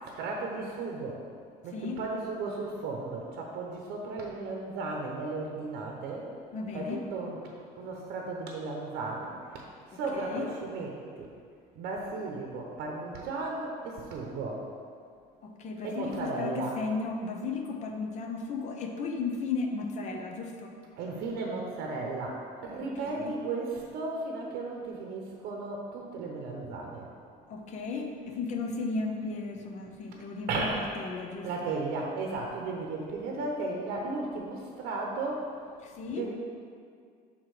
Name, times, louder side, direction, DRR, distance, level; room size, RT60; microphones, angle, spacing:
voice 1, 0.0-1.2 1.6-6.3 6.7-11.3 11.8-14.6 15.8-16.7 21.0-27.1 30.5-30.8 31.4-35.5 36.1-36.3, right 3 dB, 70° right, 0 dB, 0.8 m, -35 dB
voice 2, 6.5-7.0 9.9-10.5 15.4-20.7 22.8-23.3 27.5-31.7 35.8-36.3, left 4 dB, 45° left, 3 dB, 0.7 m, -35 dB
6.3 x 3.6 x 4.8 m, 2.2 s
cardioid pair, 135°, 17 cm